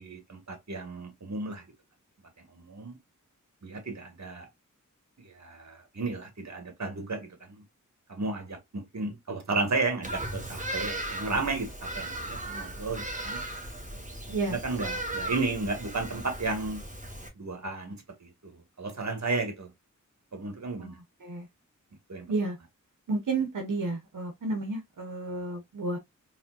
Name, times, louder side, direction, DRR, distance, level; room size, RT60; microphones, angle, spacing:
voice 1, 0.0-1.6 2.4-3.0 3.6-4.5 5.2-7.6 8.1-13.4 14.5-16.8 17.4-19.7 20.3-21.0 22.1-22.3, right 3 dB, 60° right, 1.7 m, -33 dB
Bird vocalization bird call bird song, 10.0-17.3, right 1 dB, 25° right, 1.6 m, -37 dB
voice 2, 23.1-26.0, right 3 dB, 75° right, 1.2 m, -31 dB
4.2 x 3.4 x 2.5 m
cardioid pair, 45°, 32 cm